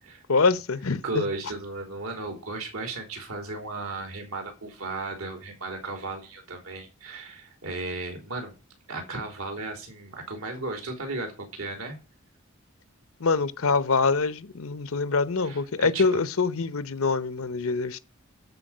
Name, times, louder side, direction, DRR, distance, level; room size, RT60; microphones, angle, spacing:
voice 1, 0.3-1.2 13.2-18.0, left 4 dB, 75° left, 0.8 m, -25 dB
voice 2, 1.0-8.5 8.9-12.0 15.4-16.2, right 2 dB, 80° right, 3.3 m, -35 dB
13.0 x 4.7 x 7.3 m
head